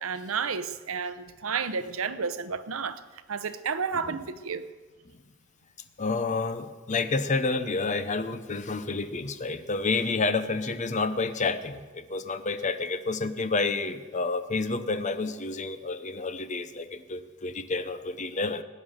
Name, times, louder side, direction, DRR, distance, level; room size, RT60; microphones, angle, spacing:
voice 1, 0.0-3.0 3.3-4.7, right 5 dB, 80° right, 0.8 m, -31 dB
voice 2, 6.0-18.6, left 3 dB, 35° left, 0.8 m, -29 dB
17.0 x 9.4 x 6.6 m
head